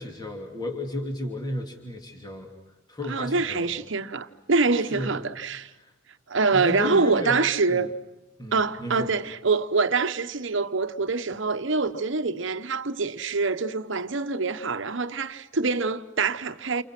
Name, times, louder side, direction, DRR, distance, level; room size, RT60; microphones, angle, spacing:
voice 1, 0.0-2.5 2.9-3.7 4.8-5.1 5.8-5.9 6.5-7.4 7.7-7.8 8.4-9.1, left 1 dB, 20° left, 2.9 m, -33 dB
voice 2, 3.1-5.7 6.3-7.9 8.5-16.8, right 4 dB, 65° right, 1.0 m, -25 dB
29.5 x 29.5 x 6.0 m
head